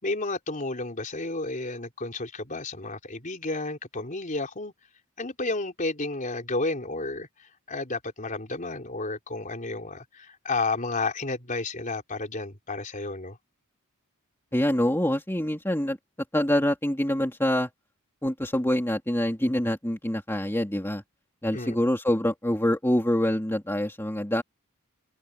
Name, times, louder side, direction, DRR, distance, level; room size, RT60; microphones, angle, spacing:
voice 1, 0.0-4.7 5.2-13.4 21.5-21.8, left 3 dB, 35° left, 4.2 m, -32 dB
voice 2, 14.5-16.0 16.3-17.7 18.2-21.0 21.4-24.4, left 1 dB, 10° left, 2.8 m, -25 dB
head